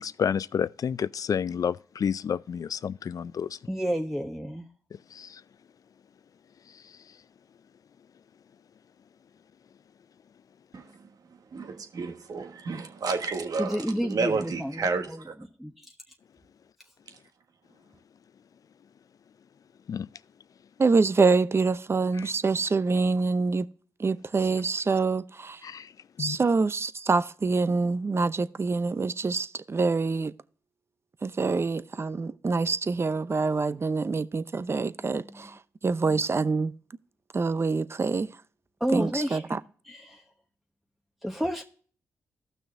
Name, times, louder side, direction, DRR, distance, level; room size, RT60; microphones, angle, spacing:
voice 1, 0.0-3.6 5.1-5.4 19.9-20.1 25.6-25.9 26.2-26.4, left 7 dB, 55° left, 0.4 m, -30 dB
voice 2, 3.7-4.7 13.6-15.2 15.6-15.9 35.0-35.5 38.8-39.4 39.9-40.2 41.2-41.6, equal, ahead, 1.1 m, -31 dB
voice 3, 10.7-11.1 11.5-15.3, right 4 dB, 60° right, 1.4 m, -31 dB
voice 4, 20.8-23.7 24.0-25.7 26.2-30.3 31.2-36.7 37.3-38.3 38.9-39.6, right 4 dB, 35° right, 0.7 m, -26 dB
14.5 x 6.2 x 2.6 m
supercardioid pair, 45°, 7 cm